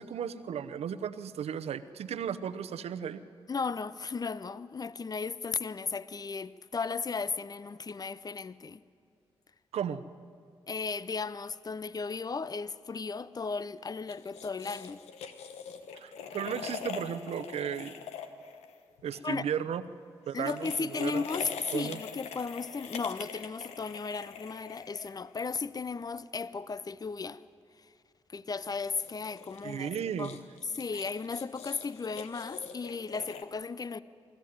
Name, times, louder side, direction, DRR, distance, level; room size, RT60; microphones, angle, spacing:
voice 1, 0.0-3.2 9.7-10.0 16.0-17.9 19.0-19.8 20.3-21.2 21.7-22.0 29.6-30.4, right 8 dB, 75° right, 0.9 m, -35 dB
voice 2, 3.5-8.8 10.7-15.0 19.2-19.5 20.3-27.4 27.8-27.9 28.3-29.9 30.2-30.3 30.6-34.0, left 4 dB, 35° left, 0.7 m, -35 dB
sound 1, 14.1-19.2 20.3-25.5 28.7-33.4, left 7 dB, 85° left, 1.2 m, -43 dB
24.0 x 14.0 x 9.5 m
supercardioid pair, 45°, 11 cm